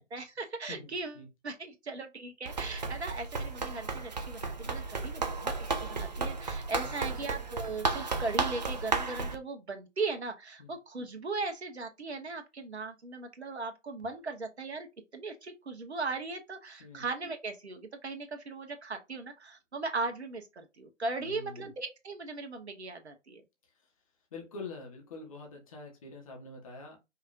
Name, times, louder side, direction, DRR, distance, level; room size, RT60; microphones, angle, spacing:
voice 1, 0.1-1.2 1.4-14.9 15.1-23.4, right 3 dB, 60° right, 1.4 m, -38 dB
voice 2, 0.7-1.3 6.8-7.2 10.6-10.7 16.8-17.1 21.2-21.7 23.6-23.9 24.3-27.0, left 3 dB, 25° left, 1.5 m, -46 dB
Run, 2.4-9.4, right 4 dB, 35° right, 0.6 m, -34 dB
5.4 x 3.6 x 2.6 m
figure-of-eight pair, 145°, 38 cm